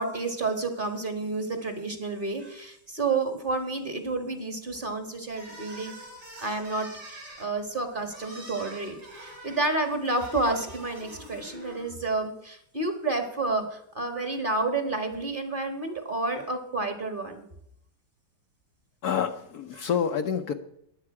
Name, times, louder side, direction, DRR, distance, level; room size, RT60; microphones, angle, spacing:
voice 1, 0.0-5.9 6.4-17.4 19.7-19.9, right 3 dB, 30° right, 7 dB, 1.4 m, -30 dB
sound 1, 5.3-11.9, right 1 dB, 75° right, 5.9 m, -45 dB
voice 2, 19.0-20.5, left 7 dB, 65° left, 7 dB, 1.2 m, -28 dB
20.5 x 7.9 x 4.8 m, 0.73 s
omnidirectional pair, 2.0 m